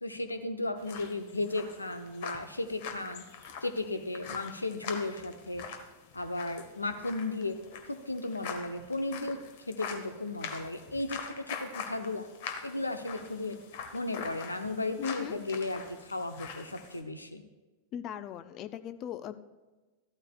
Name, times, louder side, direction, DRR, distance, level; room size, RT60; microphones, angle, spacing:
voice 1, 0.0-3.2 3.6-5.6 6.1-7.6 7.8-9.4 9.7-12.3 12.6-13.6 13.9-17.4, left 2 dB, 80° left, 8 dB, 0.7 m, -35 dB
sound 1, 0.8-17.0, left 6 dB, 50° left, 1.2 m, -44 dB
voice 2, 15.0-15.4 17.9-19.4, left 9 dB, 35° left, 11 dB, 0.6 m, -39 dB
14.0 x 12.5 x 2.4 m, 1.2 s
figure-of-eight pair, 90°, 0 cm